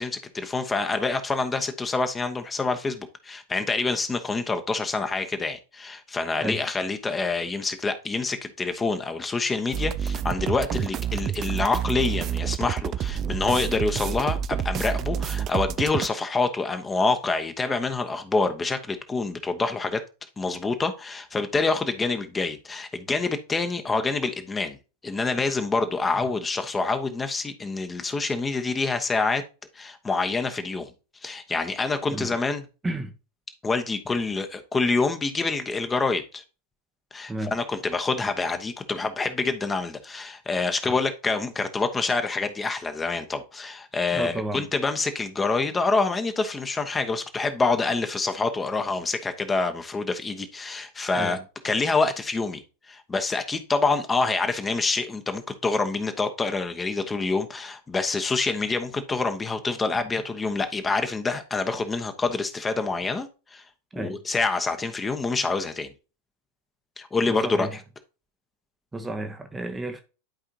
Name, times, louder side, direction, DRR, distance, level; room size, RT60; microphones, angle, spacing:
voice 1, 0.0-20.0 20.4-24.8 25.0-29.4 29.7-30.9 31.2-32.6 33.6-36.4 37.1-51.4 51.6-52.6 52.9-63.6 63.9-65.9 67.0-67.8, left 3 dB, 15° left, 1.0 m, -26 dB
sound 1, 9.7-16.1, right 9 dB, 30° right, 0.4 m, -28 dB
voice 2, 44.1-44.6 51.1-51.4 63.9-64.2 67.3-67.7 68.9-70.0, right 2 dB, 10° right, 0.9 m, -32 dB
11.5 x 4.9 x 2.8 m
figure-of-eight pair, 90°, 0 cm